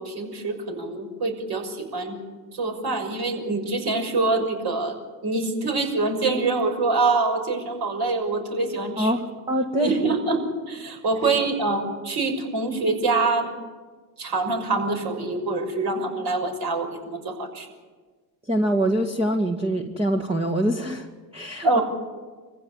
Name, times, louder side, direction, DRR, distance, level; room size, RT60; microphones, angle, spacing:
voice 1, 0.0-2.2 2.5-9.1 9.8-13.5 14.2-17.7 21.6-21.8, right 3 dB, 45° right, 4 dB, 6.2 m, -25 dB
voice 2, 9.0-9.9 18.5-21.1 21.3-21.8, right 1 dB, 10° right, 2 dB, 1.8 m, -24 dB
24.5 x 15.5 x 9.9 m, 1.4 s
hypercardioid pair, 85°, 50 cm